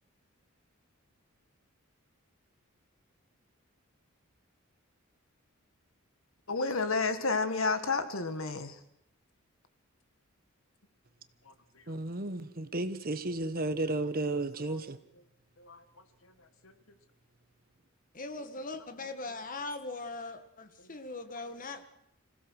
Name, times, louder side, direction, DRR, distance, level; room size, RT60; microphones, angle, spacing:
voice 1, 6.5-8.7 15.7-15.8, left 4 dB, 70° left, 1.8 m, -30 dB
voice 2, 11.9-15.0, right 2 dB, 45° right, 1.2 m, -33 dB
voice 3, 18.1-21.8, left 3 dB, 40° left, 1.8 m, -40 dB
26.5 x 16.5 x 6.4 m
head